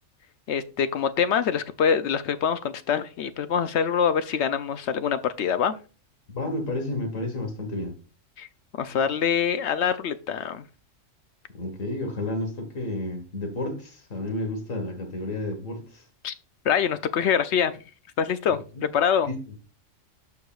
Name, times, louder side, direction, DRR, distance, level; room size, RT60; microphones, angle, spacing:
voice 1, 0.5-5.7 8.4-8.5 8.8-10.6 16.2-16.3 16.6-17.7 18.2-18.6 18.9-19.3, left 7 dB, 65° left, 0.8 m, -24 dB
voice 2, 6.3-8.0 11.5-16.1 18.5-18.9 19.3-19.5, left 2 dB, 85° left, 1.9 m, -31 dB
12.5 x 4.8 x 2.4 m
omnidirectional pair, 1.3 m